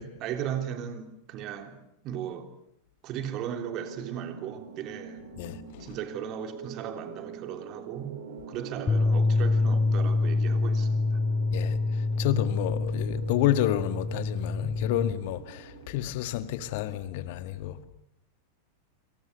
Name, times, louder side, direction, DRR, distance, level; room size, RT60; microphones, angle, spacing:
voice 1, 0.0-1.8 2.0-2.5 3.0-5.2 5.8-8.2 8.5-11.2, right 9 dB, 35° right, 3.3 m, -36 dB
sound 1, 3.6-16.0, right 6 dB, 60° right, 3.2 m, -45 dB
voice 2, 5.4-5.9 11.5-11.8 12.2-17.8, left 13 dB, 50° left, 1.7 m, -30 dB
Bass guitar, 8.9-15.1, left 3 dB, 15° left, 1.6 m, -26 dB
27.5 x 27.5 x 6.7 m
figure-of-eight pair, 90°, 0 cm